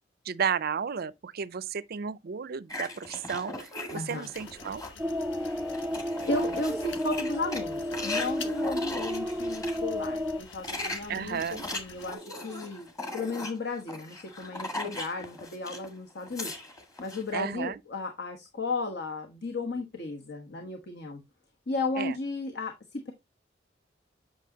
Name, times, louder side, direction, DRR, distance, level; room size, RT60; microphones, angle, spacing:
voice 1, 0.3-4.8 11.1-11.7 17.3-17.8 22.0-22.1, right 7 dB, 55° right, 0.5 m, -33 dB
sound 1, 2.7-5.0 5.4-9.8 10.4-15.9 16.2-17.2, left 2 dB, 20° left, 1.7 m, -39 dB
voice 2, 3.9-4.3 5.3-5.8 6.2-12.9 13.1-16.5 17.0-21.2 21.7-23.1, left 3 dB, 60° left, 1.2 m, -34 dB
sound 2, 4.3-12.2, left 5 dB, 85° left, 1.2 m, -48 dB
sound 3, 5.0-10.4, left 1 dB, 5° right, 0.5 m, -31 dB
8.4 x 6.2 x 2.8 m
head